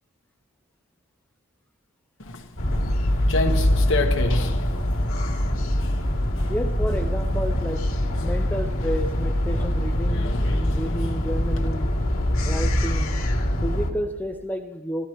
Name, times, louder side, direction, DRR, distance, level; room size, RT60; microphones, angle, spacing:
Walk footsteps, 2.2-11.7, left 2 dB, 70° left, 1.3 m, -33 dB
sound 1, 2.6-13.9, left 1 dB, 90° left, 2.3 m, -23 dB
voice 1, 6.5-7.8 8.2-11.9 12.4-13.1 13.6-15.1, equal, 10° left, 3 dB, 0.6 m, -31 dB
29.0 x 13.0 x 3.0 m, 1.1 s
head